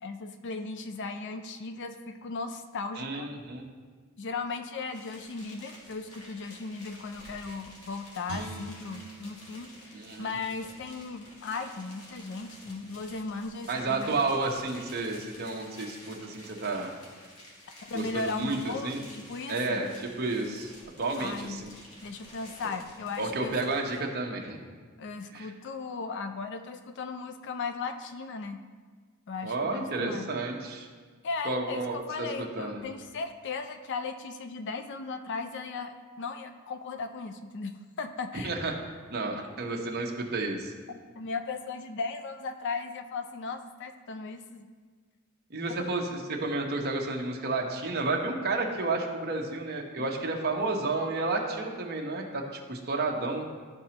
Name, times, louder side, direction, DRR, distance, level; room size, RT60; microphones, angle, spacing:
voice 1, 0.0-3.3 4.2-14.2 17.8-19.9 21.2-21.6 22.0-23.6 25.0-28.7 29.3-30.3 31.2-38.5 41.2-44.7 45.8-45.9 50.0-50.4, left 4 dB, 55° left, 7 dB, 0.4 m, -37 dB
voice 2, 3.0-3.6 9.9-10.3 13.7-16.9 17.9-19.0 19.5-21.7 23.2-24.6 25.3-25.5 29.4-30.9 31.4-32.3 32.6-32.9 38.4-38.7 39.1-40.7 45.5-53.5, right 3 dB, 45° right, 1 dB, 0.9 m, -31 dB
sound 1, 4.9-24.1, left 1 dB, 80° left, 1.7 m, -51 dB
Guitar, 8.3-11.4 11.8-12.0, right 1 dB, 65° right, 1.2 m, -44 dB
12.5 x 4.2 x 2.9 m, 1.5 s
head